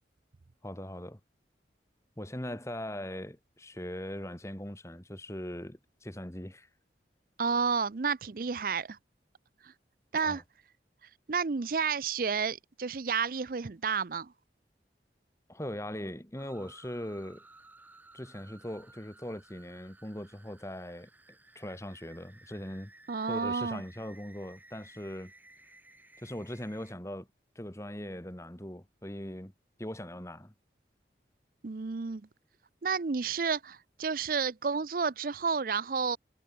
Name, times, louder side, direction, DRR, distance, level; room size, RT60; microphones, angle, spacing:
voice 1, 0.6-1.2 2.2-6.7 10.1-10.4 15.5-17.4 18.1-21.1 21.5-22.9 23.3-25.3 26.2-27.3 27.6-29.5 29.8-30.5, left 1 dB, 15° left, 2.3 m, -40 dB
voice 2, 7.4-9.0 9.6-9.7 10.1-10.4 11.0-14.3 23.1-23.8 31.6-32.2 32.8-36.2, right 5 dB, 50° right, 0.5 m, -31 dB
sound 1, 16.4-26.9, right 2 dB, 10° right, 3.2 m, -57 dB
head